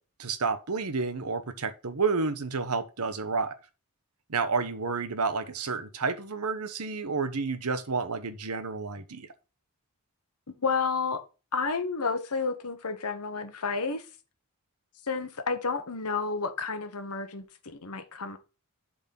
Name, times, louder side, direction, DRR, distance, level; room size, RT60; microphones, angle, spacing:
voice 1, 0.2-3.6 4.3-9.3, right 4 dB, 85° right, 1.1 m, -30 dB
voice 2, 10.5-11.2 11.5-14.1 15.0-18.4, left 4 dB, 90° left, 1.2 m, -31 dB
7.2 x 4.0 x 5.9 m
head